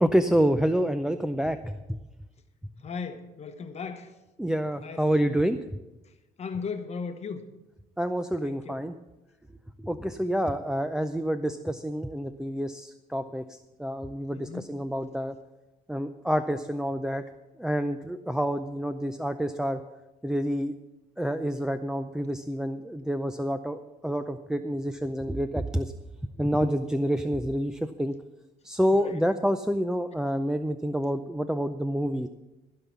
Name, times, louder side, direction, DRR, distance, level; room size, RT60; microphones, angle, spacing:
voice 1, 0.0-2.0 4.4-5.6 8.0-8.9 9.8-15.3 15.9-17.2 17.6-19.8 20.2-20.7 21.2-25.9 26.4-28.1 28.6-32.3, equal, 5° right, 7 dB, 0.5 m, -28 dB
voice 2, 2.8-4.1 4.8-5.0 6.4-7.4 8.4-8.8 14.3-14.8 28.9-29.2, left 5 dB, 40° left, 7 dB, 1.0 m, -37 dB
15.0 x 5.6 x 8.2 m, 1.0 s
cardioid pair, 110°, 17 cm